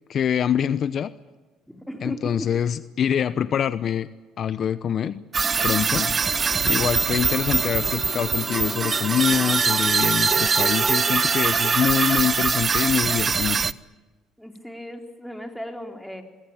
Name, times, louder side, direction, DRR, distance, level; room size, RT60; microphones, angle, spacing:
voice 1, 0.1-1.1 2.0-4.1 4.4-5.2 5.6-6.2 6.6-13.7, left 8 dB, 55° left, 15 dB, 0.9 m, -25 dB
voice 2, 1.7-2.5 14.4-16.2, equal, ahead, 5 dB, 4.0 m, -36 dB
sound 1, 5.3-13.7, right 5 dB, 35° right, 0.8 m, -22 dB
sound 2, 5.7-12.7, left 4 dB, 35° left, 5.6 m, -41 dB
24.5 x 22.5 x 8.9 m, 1.3 s
cardioid pair, 90°, 0 cm